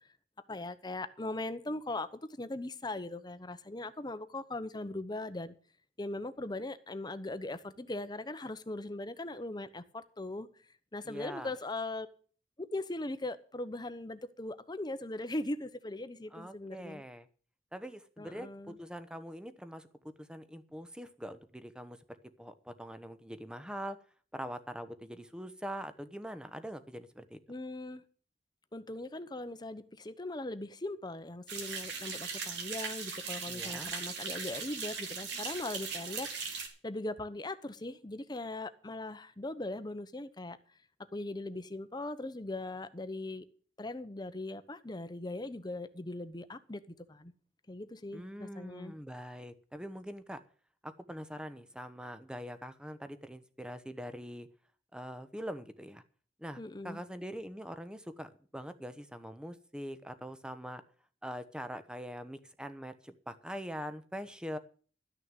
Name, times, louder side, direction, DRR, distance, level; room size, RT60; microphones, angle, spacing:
voice 1, 0.5-2.1 2.4-5.5 6.0-10.5 10.9-12.1 12.6-17.0 18.2-18.8 27.5-28.0 28.7-40.6 41.1-43.5 43.8-46.8 47.1-47.3 47.7-48.9 56.6-57.0, left 2 dB, 25° left, 0.9 m, -40 dB
voice 2, 11.0-11.5 16.3-17.3 17.7-24.0 24.3-27.4 33.5-33.9 48.1-50.4 50.8-54.5 54.9-56.0 56.4-60.8 61.2-64.6, equal, 5° right, 1.0 m, -43 dB
sound 1, 31.5-36.7, right 5 dB, 85° right, 3.2 m, -39 dB
12.5 x 6.5 x 9.0 m
head